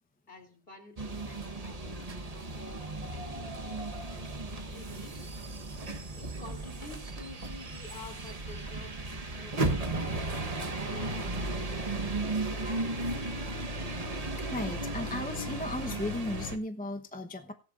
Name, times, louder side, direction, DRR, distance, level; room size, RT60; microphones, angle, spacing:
voice 1, 0.3-2.8 3.1-3.3 3.6-3.9 4.5-5.1 6.2-12.1 12.5-13.1, left 2 dB, 40° left, 4 dB, 3.2 m, -50 dB
sound 1, 1.0-16.6, right 2 dB, 30° right, 1.1 m, -35 dB
voice 2, 14.2-17.5, left 1 dB, 10° left, 6 dB, 0.7 m, -36 dB
17.0 x 11.0 x 2.5 m, 0.39 s
omnidirectional pair, 1.4 m